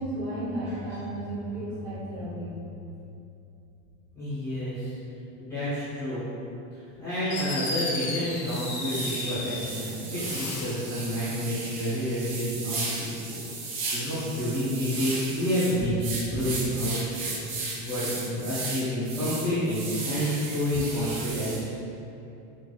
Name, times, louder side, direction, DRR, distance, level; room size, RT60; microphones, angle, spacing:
voice 1, 0.0-2.7, right 1 dB, 25° right, -11 dB, 1.2 m, -33 dB
voice 2, 4.1-4.9 5.4-6.2 6.7-21.6, equal, 10° left, -15 dB, 0.8 m, -29 dB
Fireworks, 6.9-7.0 7.3-9.7 10.1-10.9, left 2 dB, 70° left, 0.8 m, -34 dB
sound 1, 8.4-21.6, right 3 dB, 40° right, 0.5 m, -35 dB
4.6 x 2.5 x 2.2 m, 2.7 s
supercardioid pair, 180°, 40 cm